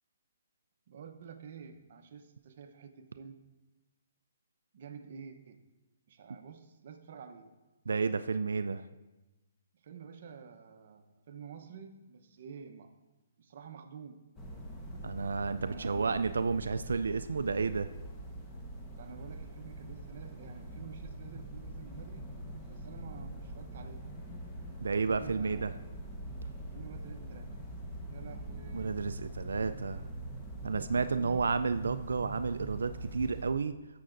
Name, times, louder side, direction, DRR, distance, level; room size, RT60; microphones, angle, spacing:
voice 1, 0.9-3.4 4.7-5.6 6.1-7.5 9.7-12.9 13.4-14.2 15.6-16.3 19.0-22.4 22.7-24.1 25.2-25.9 26.7-27.5 28.1-29.0 31.1-31.5, right 6 dB, 50° right, 6 dB, 0.9 m, -49 dB
voice 2, 7.9-8.8 15.0-17.9 24.8-25.7 28.7-30.0 30.6-33.7, right 4 dB, 85° right, 11 dB, 0.3 m, -31 dB
sound 1, 14.4-33.5, right 1 dB, 10° left, 1.1 m, -43 dB
14.0 x 6.7 x 2.6 m, 1.1 s
hypercardioid pair, 155°, 0 cm